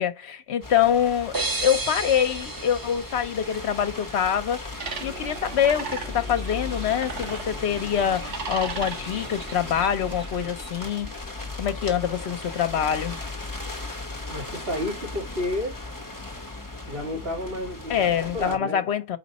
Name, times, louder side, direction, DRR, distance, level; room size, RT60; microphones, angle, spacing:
voice 1, 0.0-1.3 1.6-4.6 5.0-11.1 11.6-13.2 17.9-19.2, left 9 dB, 65° left, 1.0 m, -25 dB
sound 1, 0.6-18.6, left 2 dB, 15° left, 1.1 m, -37 dB
sound 2, 1.3-4.1, right 3 dB, 30° right, 0.4 m, -32 dB
sound 3, 4.8-10.9, right 4 dB, 70° right, 1.4 m, -38 dB
voice 2, 14.3-15.7 16.9-18.9, left 1 dB, 50° right, 3.1 m, -31 dB
5.2 x 4.8 x 4.1 m
omnidirectional pair, 1.3 m